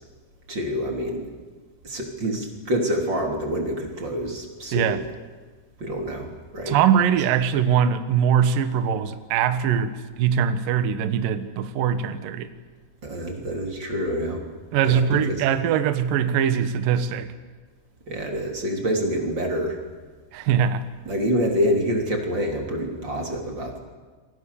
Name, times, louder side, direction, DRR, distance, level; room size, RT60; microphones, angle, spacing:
voice 1, 0.5-1.3 1.8-5.0 5.8-6.8 13.0-14.5 14.8-15.4 18.1-19.8 21.0-23.8, equal, 25° right, 1 dB, 3.1 m, -27 dB
voice 2, 6.7-12.5 14.7-17.3 20.3-20.8, right 8 dB, 85° right, 10 dB, 1.9 m, -22 dB
28.0 x 23.0 x 7.0 m, 1.4 s
omnidirectional pair, 5.9 m